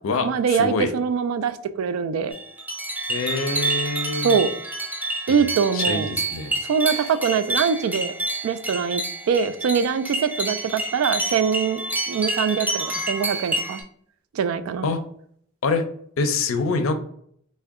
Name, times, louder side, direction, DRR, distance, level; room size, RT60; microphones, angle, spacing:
voice 1, 0.2-2.3 4.2-4.5 5.3-6.1 6.7-8.1 8.4-13.8 14.3-14.9, right 6 dB, 85° right, 12 dB, 0.3 m, -23 dB
sound 1, 2.3-13.8, right 2 dB, 10° right, 0.5 m, -28 dB
voice 2, 3.1-4.4 5.3-5.4 5.7-6.5 6.9-7.1 14.8-15.0 15.6-15.8 16.2-16.9, left 3 dB, 70° left, 8 dB, 0.5 m, -25 dB
3.6 x 2.1 x 3.4 m, 0.63 s
head